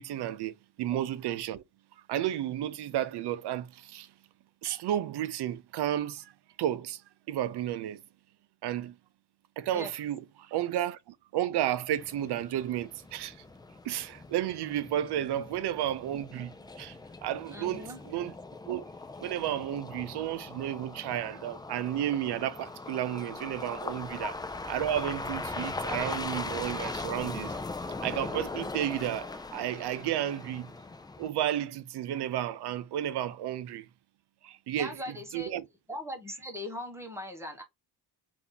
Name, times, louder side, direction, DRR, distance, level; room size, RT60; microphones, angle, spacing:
voice 1, 0.0-1.6 2.1-4.1 4.6-6.3 6.6-7.0 7.3-8.0 8.6-8.9 9.6-13.4 13.8-18.3 18.7-18.9 19.2-24.3 24.7-27.7 28.0-30.7 31.2-33.9 34.4-35.6, right 11 dB, 70° right, 0.6 m, -32 dB
sound 1, 12.0-31.3, left 3 dB, 10° left, 0.3 m, -40 dB
voice 2, 17.5-18.0 34.8-35.6 35.9-37.6, left 1 dB, 5° right, 1.2 m, -40 dB
3.5 x 2.8 x 3.8 m
cardioid pair, 140°, 42 cm